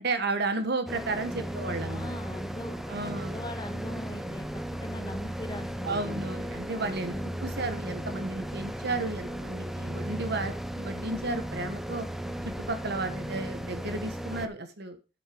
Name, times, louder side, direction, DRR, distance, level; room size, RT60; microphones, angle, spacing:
voice 1, 0.0-2.2 2.9-3.4 5.8-12.1 12.4-15.0, right 3 dB, 60° right, 8 dB, 1.2 m, -33 dB
sound 1, 0.9-14.5, right 1 dB, ahead, 0.6 m, -36 dB
voice 2, 1.3-6.3 7.1-7.4, left 1 dB, 25° left, 8 dB, 1.4 m, -41 dB
sound 2, 3.8-12.7, right 1 dB, 30° right, 1.9 m, -49 dB
7.6 x 7.6 x 5.0 m, 0.31 s
head